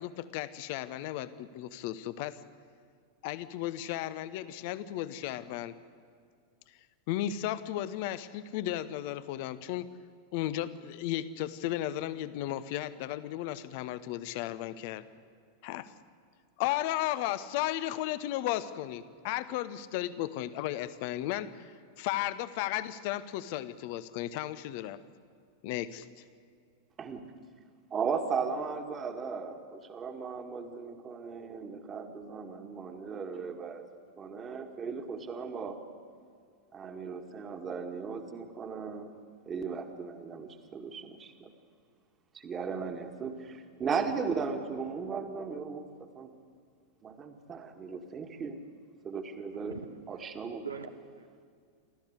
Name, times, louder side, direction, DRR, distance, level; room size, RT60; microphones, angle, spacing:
voice 1, 0.0-2.4 3.2-5.7 7.1-9.9 10.3-15.0 15.6-15.9 16.6-21.7 22.0-25.0 25.6-26.1, left 13 dB, 45° left, 14 dB, 1.0 m, -34 dB
voice 2, 27.9-33.8 34.2-35.8 36.7-39.1 39.5-41.5 42.3-45.9 46.2-46.3 47.0-48.6 49.0-49.8 50.1-50.7, right 5 dB, 25° right, 6 dB, 2.0 m, -36 dB
voice 3, 49.7-51.2, right 5 dB, 75° right, 7 dB, 1.2 m, -44 dB
29.0 x 13.5 x 8.2 m, 2.3 s
figure-of-eight pair, 90°, 0 cm